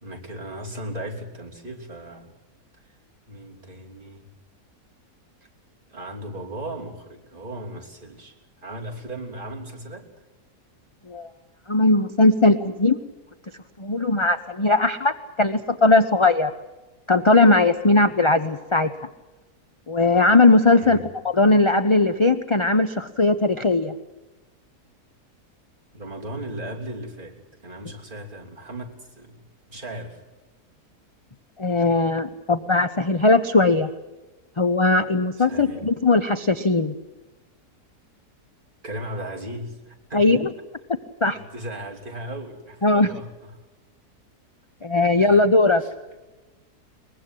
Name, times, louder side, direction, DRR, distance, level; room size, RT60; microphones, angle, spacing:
voice 1, 0.0-2.3 3.3-4.2 5.9-8.3 8.6-10.1 20.7-21.1 25.9-27.3 27.6-30.2 35.4-35.9 38.8-40.4 41.3-43.6 45.2-45.4 45.8-45.9, right 1 dB, 30° right, -1 dB, 3.4 m, -37 dB
voice 2, 11.7-13.0 13.8-16.5 17.1-18.9 19.9-21.0 21.3-23.9 31.6-33.9 34.6-36.9 40.1-40.5 41.2-41.4 42.8-43.1 44.8-45.8, left 2 dB, 35° left, 10 dB, 0.5 m, -19 dB
23.0 x 20.5 x 7.8 m, 1.1 s
omnidirectional pair, 1.7 m